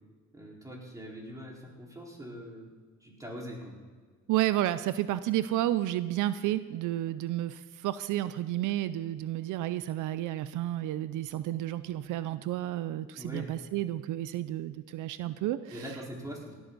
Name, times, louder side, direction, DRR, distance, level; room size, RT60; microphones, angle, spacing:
voice 1, 0.3-2.7 3.0-3.7 13.2-13.5 15.7-16.5, equal, 10° right, -3 dB, 4.6 m, -42 dB
voice 2, 4.3-15.8, right 14 dB, 85° right, 14 dB, 0.6 m, -31 dB
17.5 x 12.5 x 4.1 m, 1.5 s
cardioid pair, 90°, 30 cm